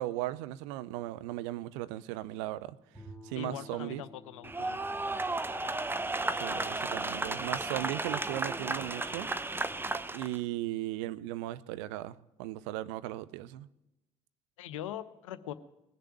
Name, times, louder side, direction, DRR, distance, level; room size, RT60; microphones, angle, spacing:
voice 1, 0.0-2.8 3.2-4.0 6.4-9.3 10.1-13.7, right 15 dB, 70° right, 15 dB, 0.5 m, -37 dB
Bowed string instrument, 2.9-7.2, equal, 10° left, 2.9 m, -54 dB
voice 2, 3.3-4.9 14.6-15.5, left 11 dB, 75° left, 14 dB, 0.7 m, -42 dB
sound 1, 4.4-10.4, right 2 dB, 15° right, 0.7 m, -34 dB
19.5 x 6.7 x 8.9 m, 0.94 s
figure-of-eight pair, 45°, 16 cm